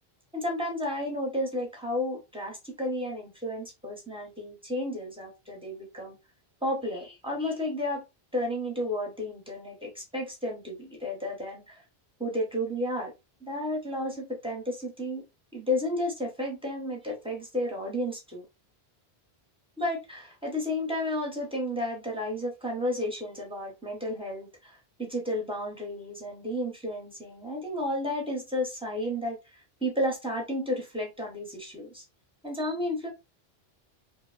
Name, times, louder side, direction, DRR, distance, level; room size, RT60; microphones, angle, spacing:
voice 1, 0.3-6.2 6.6-8.1 8.3-11.8 12.2-13.1 13.4-18.4 19.8-32.0 32.4-33.1, left 1 dB, 5° right, 0.7 m, -32 dB
2.9 x 2.1 x 2.3 m
omnidirectional pair, 1.1 m